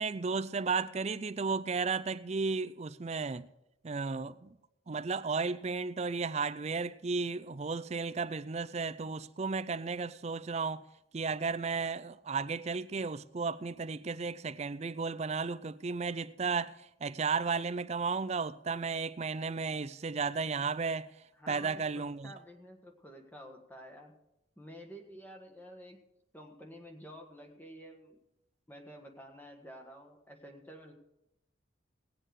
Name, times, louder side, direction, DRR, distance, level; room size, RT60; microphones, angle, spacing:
voice 1, 0.0-3.5 3.8-4.6 4.9-10.8 11.1-21.1 21.5-22.3, right 4 dB, 35° right, 0.4 m, -34 dB
voice 2, 21.4-24.1 24.6-26.0 26.3-28.2 28.7-30.9, equal, 10° left, 1.5 m, -50 dB
19.0 x 7.7 x 4.8 m
head